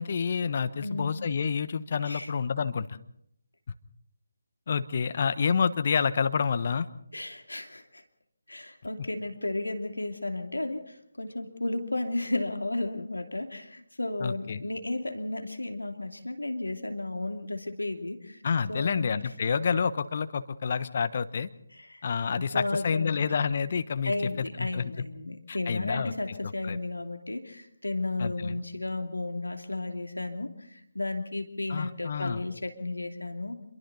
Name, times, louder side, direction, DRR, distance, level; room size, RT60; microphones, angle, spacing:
voice 1, 0.0-2.9 4.7-6.9 14.2-14.6 18.4-21.5 22.0-24.9 25.5-26.1 26.4-26.8 28.2-28.6 31.7-32.4, left 6 dB, 40° left, 12 dB, 1.1 m, -28 dB
voice 2, 0.8-1.1 2.1-2.3 7.1-8.0 8.5-18.4 18.7-19.1 21.7-22.0 22.3-23.2 24.0-33.6, left 2 dB, 80° left, 5 dB, 2.9 m, -33 dB
28.0 x 23.0 x 4.2 m, 0.71 s
figure-of-eight pair, 155°, 0 cm